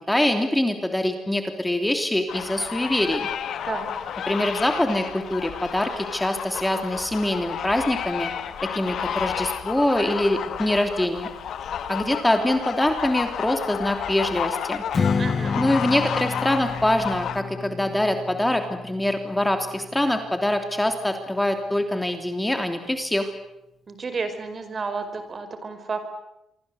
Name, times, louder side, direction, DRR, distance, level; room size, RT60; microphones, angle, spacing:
voice 1, 0.1-3.3 4.3-8.3 8.6-11.3 11.9-14.8 15.6-23.3, left 1 dB, 10° left, 6 dB, 3.1 m, -24 dB
sound 1, 2.3-17.4, left 8 dB, 70° left, 2.2 m, -31 dB
Strum, 14.9-20.2, left 5 dB, 40° left, 1.8 m, -30 dB
voice 2, 15.2-15.6 23.9-26.0, right 4 dB, 40° right, 10 dB, 5.0 m, -31 dB
27.0 x 24.0 x 8.1 m, 0.88 s
cardioid pair, 90°, 0 cm